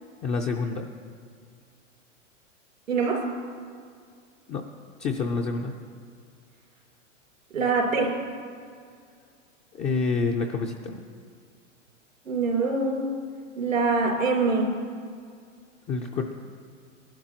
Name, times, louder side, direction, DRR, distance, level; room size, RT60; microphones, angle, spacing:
voice 1, 0.2-0.9 4.5-4.6 5.0-5.7 9.7-11.0 15.9-16.3, left 4 dB, 20° left, 2 dB, 0.4 m, -28 dB
voice 2, 2.9-3.2 7.5-8.1 12.2-13.1 13.6-14.7, right 4 dB, 85° right, -1 dB, 3.4 m, -24 dB
19.0 x 12.0 x 2.9 m, 2.2 s
hypercardioid pair, 115°, 38 cm